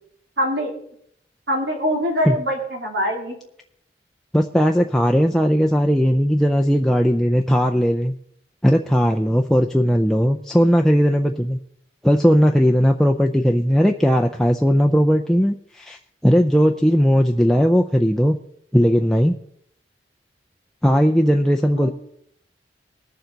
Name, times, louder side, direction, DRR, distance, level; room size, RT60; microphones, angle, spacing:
voice 1, 0.4-0.7 1.5-3.4 21.7-21.9, equal, 85° right, 0 dB, 3.2 m, -23 dB
voice 2, 4.3-8.1 8.6-11.6 12.0-18.3 18.7-19.4 20.8-21.9, equal, ahead, 1 dB, 0.4 m, -17 dB
21.0 x 7.0 x 3.9 m, 0.69 s
head